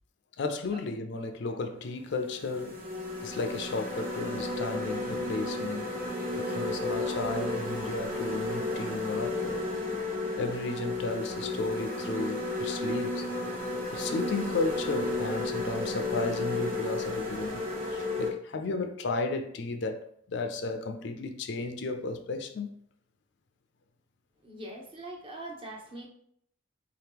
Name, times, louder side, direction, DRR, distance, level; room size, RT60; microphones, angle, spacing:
voice 1, 0.4-2.9 3.2-6.0 6.4-9.6 10.4-13.2 13.9-20.0 20.3-22.7, left 3 dB, 55° left, 0.4 m, -34 dB
sound 1, 1.4-1.5 2.1-18.3, left 2 dB, 45° right, 1.1 m, -33 dB
voice 2, 24.4-26.1, right 1 dB, 25° right, 0.6 m, -42 dB
4.0 x 2.9 x 3.5 m
head